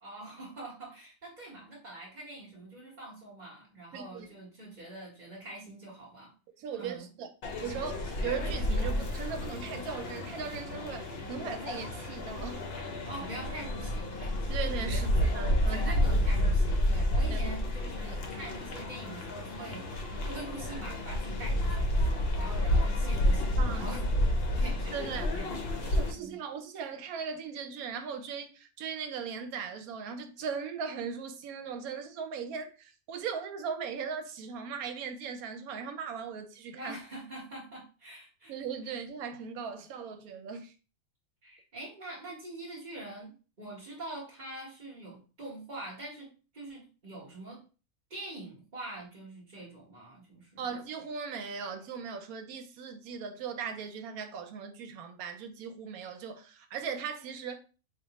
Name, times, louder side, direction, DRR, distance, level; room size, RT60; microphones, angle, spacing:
voice 1, 0.0-6.3 6.8-7.1 13.0-14.4 14.8-15.3 15.7-19.9 20.2-24.0 24.6-25.5 26.2-26.4 36.8-38.5 41.4-47.6 48.1-50.7, right 2 dB, 35° right, 1.1 m, -44 dB
voice 2, 3.9-4.3 6.6-7.3 7.6-12.6 14.5-15.8 17.3-17.5 18.1-18.2 23.6-23.9 24.9-25.3 25.9-37.0 38.5-40.7 50.6-57.6, right 6 dB, 80° right, 1.1 m, -38 dB
sound 1, 7.4-26.1, left 1 dB, 55° left, 0.7 m, -30 dB
3.3 x 2.4 x 4.0 m
omnidirectional pair, 1.5 m